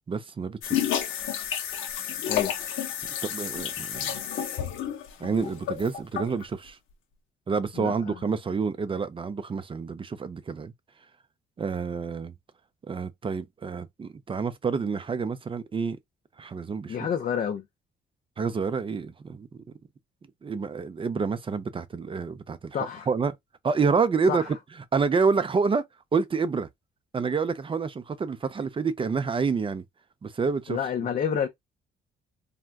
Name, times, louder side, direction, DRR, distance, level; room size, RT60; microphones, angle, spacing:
voice 1, 0.1-0.8 3.2-4.2 5.2-6.8 7.5-10.7 11.6-12.3 12.9-16.0 16.4-17.0 18.4-19.5 20.4-22.8 23.1-23.3 23.6-24.6 24.9-25.9 26.1-26.7 27.1-29.8 30.2-30.8, right 5 dB, 25° right, 0.4 m, -28 dB
sound 1, 0.6-6.5, left 10 dB, 85° left, 0.6 m, -30 dB
voice 2, 7.7-8.2 16.9-17.6 22.7-23.1 24.3-24.5 30.7-31.5, left 7 dB, 40° left, 0.4 m, -29 dB
3.4 x 2.2 x 2.2 m
cardioid pair, 90°, 20 cm